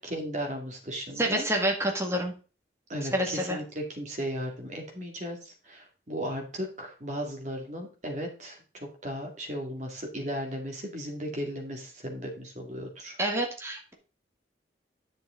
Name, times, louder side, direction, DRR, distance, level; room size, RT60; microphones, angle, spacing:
voice 1, 0.0-1.4 2.9-13.2, equal, 40° right, 1 dB, 2.3 m, -36 dB
voice 2, 1.2-2.3 3.1-3.6 13.2-13.9, right 1 dB, 15° right, 1 dB, 1.9 m, -28 dB
10.5 x 6.4 x 3.8 m, 0.36 s
head